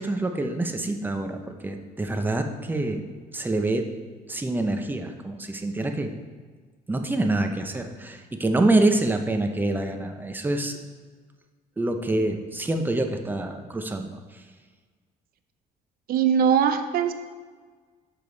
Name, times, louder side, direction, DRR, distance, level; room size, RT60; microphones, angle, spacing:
voice 1, 0.0-3.0 3.3-3.8 4.3-6.1 6.9-10.8 11.8-14.2, right 2 dB, 10° right, 5 dB, 0.7 m, -26 dB
voice 2, 16.1-17.1, right 8 dB, 60° right, 8 dB, 0.6 m, -21 dB
6.5 x 5.3 x 3.9 m, 1.5 s
cardioid pair, 110°, 17 cm